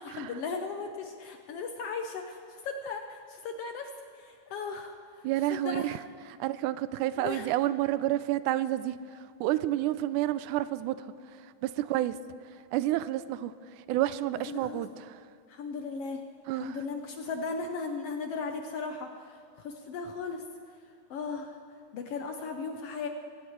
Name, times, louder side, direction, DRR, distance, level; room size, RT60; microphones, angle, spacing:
voice 1, 0.0-3.9 4.2-5.0 5.5-5.9 7.2-7.5 14.5-14.8 15.5-16.2 16.5-20.4 21.1-21.6 21.9-23.1, left 4 dB, 70° left, 4 dB, 1.6 m, -37 dB
voice 2, 5.2-6.0 6.4-9.0 9.4-11.0 11.6-12.2 12.7-13.5 13.9-15.2 16.5-16.8, right 14 dB, 90° right, 15 dB, 2.0 m, -29 dB
23.5 x 16.5 x 3.1 m, 2.2 s
omnidirectional pair, 3.4 m